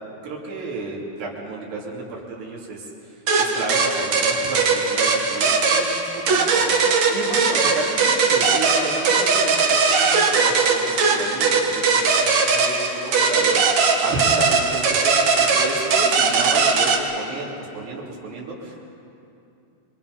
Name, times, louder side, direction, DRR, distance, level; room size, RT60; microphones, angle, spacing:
voice 1, 0.2-18.8, right 2 dB, 85° right, -4 dB, 5.2 m, -32 dB
sound 1, 3.3-17.0, right 4 dB, 55° right, 2.4 m, -19 dB
27.0 x 24.0 x 5.4 m, 2.7 s
omnidirectional pair, 4.7 m